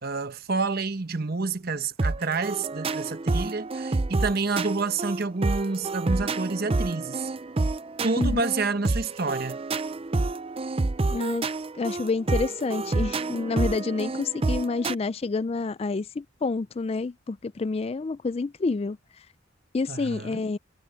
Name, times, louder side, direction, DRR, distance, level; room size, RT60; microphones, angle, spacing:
voice 1, 0.0-7.3 8.0-9.6 19.9-20.4, right 3 dB, 50° right, 1.0 m, -29 dB
sound 1, 2.0-14.9, right 3 dB, 30° right, 0.5 m, -28 dB
voice 2, 11.1-11.5 11.8-19.0 19.7-20.6, left 3 dB, 30° left, 0.3 m, -28 dB
head